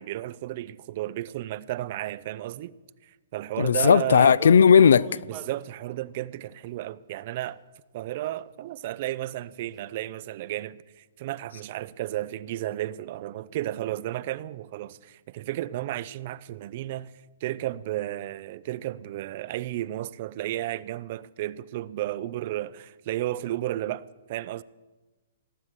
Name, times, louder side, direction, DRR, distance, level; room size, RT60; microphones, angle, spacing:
voice 1, 0.0-2.7 3.0-4.4 5.3-7.6 7.9-17.1 17.4-24.6, right 14 dB, 40° right, 0.4 m, -33 dB
voice 2, 3.6-5.1, left 7 dB, 80° left, 0.3 m, -16 dB
sound 1, 4.3-5.6 6.6-6.7 7.4-7.5 8.0-8.1 8.7-8.8 9.3-9.5 9.8-9.9, right 9 dB, 25° right, 0.8 m, -42 dB
18.5 x 7.4 x 8.1 m
hypercardioid pair, 160°, 0 cm